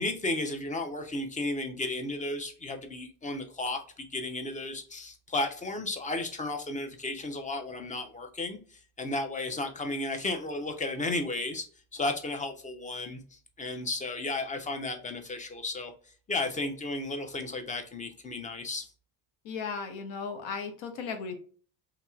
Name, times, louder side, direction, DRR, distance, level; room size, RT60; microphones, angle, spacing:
voice 1, 0.0-11.6 11.9-15.9 16.3-18.9, left 2 dB, 15° left, 0.5 m, -34 dB
voice 2, 19.4-21.3, left 5 dB, 70° left, 0.9 m, -36 dB
2.9 x 2.8 x 2.3 m
supercardioid pair, 100°, 48 cm